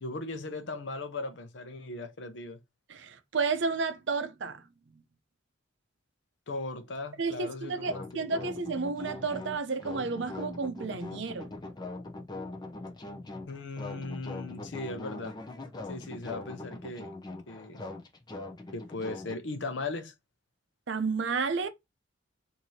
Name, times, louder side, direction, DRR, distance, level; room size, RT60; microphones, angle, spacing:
voice 1, 0.0-2.6 6.5-8.5 13.5-15.3 15.9-17.2 17.5-17.8 18.7-20.1, left 2 dB, 65° left, 0.7 m, -38 dB
voice 2, 2.9-4.6 7.2-11.5 20.9-21.7, right 4 dB, 65° right, 0.6 m, -31 dB
sound 1, 7.9-19.4, left 2 dB, 20° left, 0.6 m, -41 dB
4.7 x 2.7 x 2.7 m
head